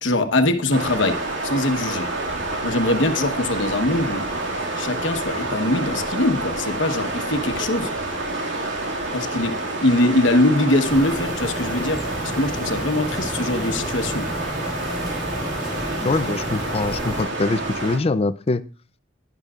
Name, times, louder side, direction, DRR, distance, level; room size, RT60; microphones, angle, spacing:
voice 1, 0.0-2.1 2.6-4.3 4.8-7.9 9.1-14.3, left 1 dB, 70° left, 6 dB, 1.2 m, -22 dB
sound 1, 0.7-18.0, right 2 dB, 90° right, 2.1 m, -28 dB
sound 2, 10.8-17.2, equal, ahead, 3.6 m, -32 dB
voice 2, 16.0-18.6, left 3 dB, 30° left, 14 dB, 0.5 m, -23 dB
11.5 x 10.5 x 2.4 m, 0.34 s
head